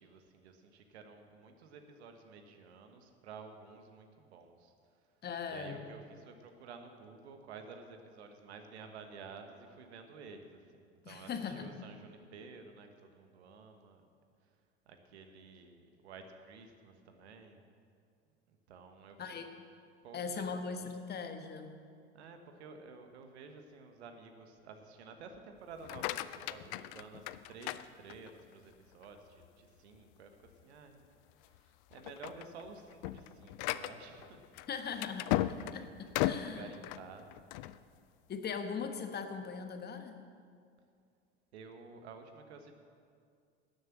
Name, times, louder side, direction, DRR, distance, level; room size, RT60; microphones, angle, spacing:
voice 1, 0.0-4.7 5.5-14.1 14.9-17.6 18.7-19.3 20.0-20.9 22.1-31.1 31.5-34.4 36.2-37.4 41.5-42.7, right 4 dB, 75° right, 6 dB, 1.3 m, -52 dB
voice 2, 5.2-5.9 11.0-11.7 19.2-19.5 20.1-21.8 34.7-36.7 38.3-40.2, left 6 dB, 30° left, 6 dB, 1.3 m, -40 dB
sound 1, 25.7-28.5 29.0-29.5 29.9-30.0 30.5-30.6 31.3-31.6 31.9-37.8, left 15 dB, 55° left, 0.5 m, -37 dB
12.0 x 7.9 x 7.4 m, 2.3 s
hypercardioid pair, 80°, 34 cm